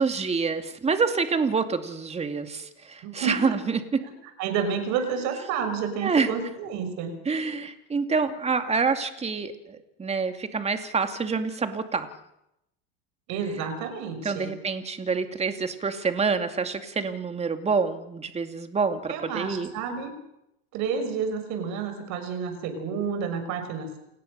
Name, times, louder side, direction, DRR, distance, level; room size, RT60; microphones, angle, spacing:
voice 1, 0.0-4.0 6.0-6.3 7.3-12.1 14.2-19.7, right 5 dB, 20° right, 7 dB, 2.4 m, -27 dB
voice 2, 3.0-3.4 4.0-4.1 4.4-7.2 13.3-14.5 19.1-20.1 20.7-24.0, right 6 dB, 60° right, 8 dB, 6.2 m, -30 dB
29.0 x 17.0 x 6.7 m, 0.84 s
supercardioid pair, 120°, 32 cm